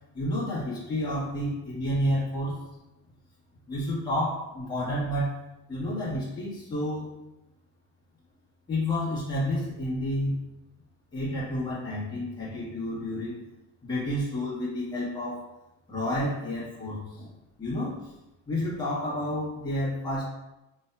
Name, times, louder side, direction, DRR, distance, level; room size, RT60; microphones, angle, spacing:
voice 1, 0.1-2.6 3.7-5.4 5.7-7.1 8.7-10.4 11.1-13.4 13.8-15.4 15.9-17.3 17.6-18.1 18.5-20.3, left 1 dB, 10° left, -9 dB, 1.1 m, -30 dB
5.1 x 2.6 x 2.2 m, 0.94 s
cardioid pair, 165°, 35 cm